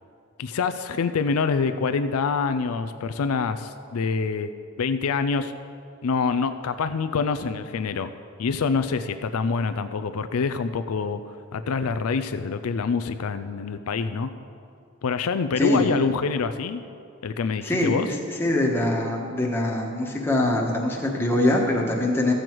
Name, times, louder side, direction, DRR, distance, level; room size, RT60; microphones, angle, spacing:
voice 1, 0.4-4.5 4.8-5.5 6.0-8.1 8.4-14.3 15.0-16.8 17.2-18.1, left 5 dB, 80° left, 11 dB, 0.4 m, -26 dB
voice 2, 17.6-22.3, left 1 dB, 10° left, -2 dB, 1.3 m, -23 dB
13.5 x 7.8 x 4.6 m, 2.4 s
head